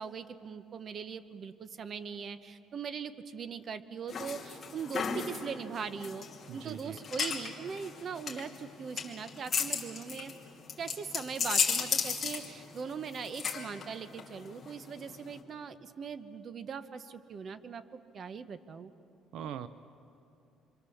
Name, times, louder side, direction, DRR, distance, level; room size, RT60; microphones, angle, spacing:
voice 1, 0.0-6.2 6.5-10.3 10.8-17.8 18.1-18.9, right 6 dB, 35° right, 12 dB, 0.9 m, -40 dB
Garlic Press, 4.1-15.4, left 6 dB, 25° left, 2.5 m, -35 dB
voice 2, 6.5-7.0 19.3-19.7, right 9 dB, 65° right, 13 dB, 0.6 m, -41 dB
27.0 x 25.5 x 7.1 m, 2.7 s
cardioid pair, 160°, 0 cm